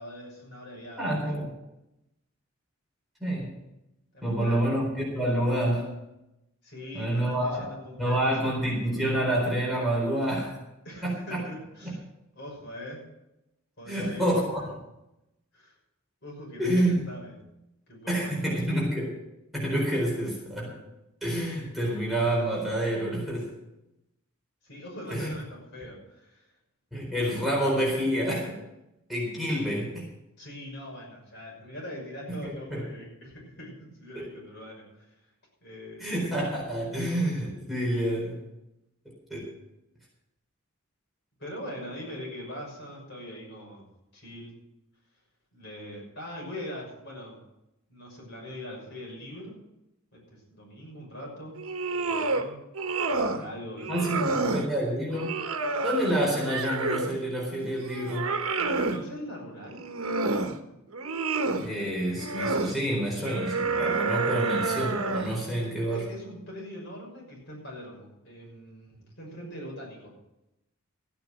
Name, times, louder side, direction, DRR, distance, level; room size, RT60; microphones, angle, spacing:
voice 1, 0.0-1.1 4.1-4.7 6.6-8.4 10.8-12.0 12.3-13.0 13.8-14.2 14.6-14.7 15.5-15.8 16.2-17.3 17.9-18.6 24.6-26.5 30.4-35.3 35.6-36.1 41.4-43.9 44.1-44.5 45.5-47.4 47.9-49.6 50.1-51.6 51.9-52.6 53.1-54.4 58.6-59.8 64.2-64.3 65.4-70.1, equal, 55° left, -2 dB, 6.2 m, -42 dB
voice 2, 1.0-1.5 3.2-3.5 4.2-6.0 6.9-7.7 8.0-10.6 11.0-11.4 13.9-14.8 16.6-17.0 18.1-19.1 19.5-20.8 21.2-23.6 25.1-25.3 26.9-28.6 29.1-30.1 32.4-32.8 34.2-34.3 36.0-38.4 39.0-39.5 53.9-55.4 55.8-58.4 61.6-66.0, right 1 dB, ahead, -5 dB, 4.2 m, -28 dB
sound 1, 51.6-52.5 52.7-53.4 53.8-54.7 55.1-57.2 57.6-59.0 59.7-60.6 60.9-61.7 62.2-62.7 63.3-65.4, right 3 dB, 80° right, 1.2 m, -29 dB
15.0 x 9.2 x 6.3 m, 0.90 s
head